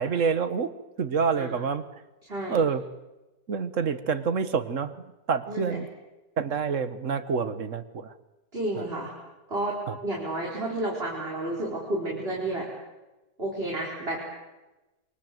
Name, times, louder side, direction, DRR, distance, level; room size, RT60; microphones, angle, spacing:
voice 1, 0.0-1.8 2.5-2.8 3.5-4.9 5.3-5.9 6.4-8.1 8.8-8.9 9.9-10.0, right 6 dB, 50° right, 12 dB, 1.5 m, -27 dB
voice 2, 2.2-2.6 5.5-5.8 8.5-9.1 9.5-12.7 13.4-14.4, right 1 dB, 35° right, -3 dB, 5.2 m, -31 dB
28.5 x 24.0 x 7.9 m, 1.1 s
omnidirectional pair, 1.9 m